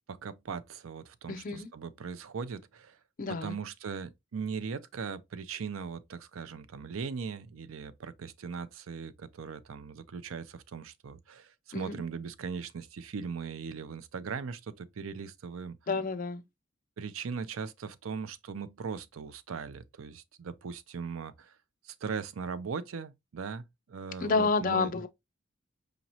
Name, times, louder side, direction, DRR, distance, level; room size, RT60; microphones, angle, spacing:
voice 1, 0.1-3.0 3.4-15.8 17.0-21.6 21.8-25.0, right 5 dB, 90° right, 0.5 m, -39 dB
voice 2, 1.3-1.7 3.2-3.6 11.7-12.0 15.9-16.4 24.2-25.1, left 4 dB, 40° left, 0.5 m, -29 dB
5.0 x 2.9 x 2.7 m
head